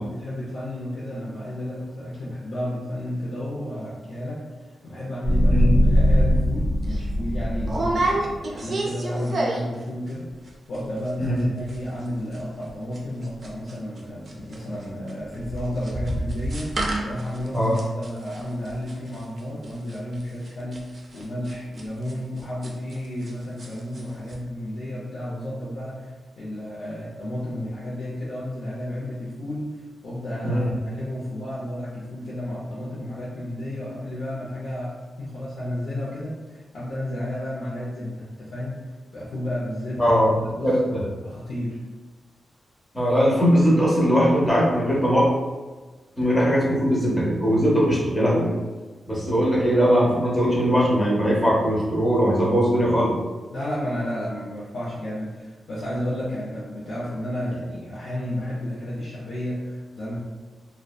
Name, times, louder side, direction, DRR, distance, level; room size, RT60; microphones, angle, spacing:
voice 1, 0.0-4.4 4.8-10.3 10.7-16.7 17.0-20.9 21.1-40.8 41.2-41.8 53.5-60.2, left 1 dB, 55° left, -8 dB, 0.5 m, -32 dB
sound 1, 5.2-8.4, equal, 80° left, 0.9 m, -21 dB
sound 2, 6.3-6.5 6.8-7.0 7.7-9.8 10.1-10.5 10.7-10.8 11.1-11.4 11.7-14.0 14.3-23.3 23.6-24.0 24.3-24.4, right 2 dB, 45° right, 0.4 m, -30 dB
voice 2, 17.5-17.8 30.4-30.7 40.0-40.3 40.6-41.0 42.9-45.3 46.2-48.5 49.1-53.1, equal, 15° left, -5 dB, 0.6 m, -20 dB
2.6 x 2.1 x 2.2 m, 1.3 s
wide cardioid pair, 150°, 0 cm